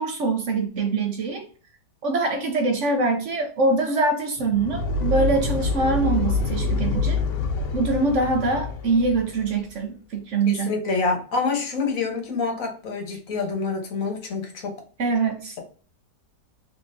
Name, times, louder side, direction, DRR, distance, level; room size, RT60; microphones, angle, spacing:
voice 1, 0.0-1.5 2.0-7.2 7.7-10.7 15.0-15.6, right 3 dB, 65° right, 0.7 m, -24 dB
sound 1, 4.4-9.6, left 3 dB, 85° left, 1.4 m, -26 dB
voice 2, 10.5-14.7, left 4 dB, 55° left, 1.3 m, -27 dB
3.8 x 3.3 x 2.5 m
omnidirectional pair, 1.9 m